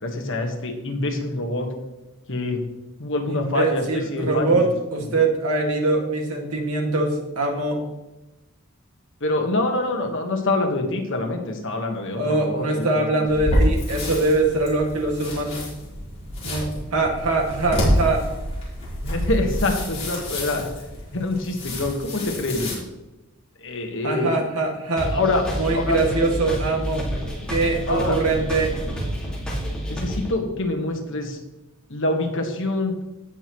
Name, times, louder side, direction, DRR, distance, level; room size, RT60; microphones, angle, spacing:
voice 1, 0.0-1.7 2.3-2.6 3.0-4.6 5.0-5.1 9.2-13.0 13.6-13.7 19.0-20.7 21.1-22.8 23.6-24.3 25.1-25.4 25.7-26.0 27.9-28.2 29.9-31.4 31.9-32.9, left 2 dB, 60° left, 3 dB, 1.6 m, -25 dB
voice 2, 3.3-7.8 12.2-15.6 16.4-18.2 24.0-25.1 25.5-27.1 27.5-28.7, right 2 dB, 80° right, 1 dB, 2.1 m, -23 dB
sound 1, 13.2-22.8, equal, 30° left, 4.1 m, -27 dB
sound 2, 25.0-30.3, equal, 5° left, 2.2 m, -29 dB
17.0 x 6.2 x 3.1 m, 1.0 s
head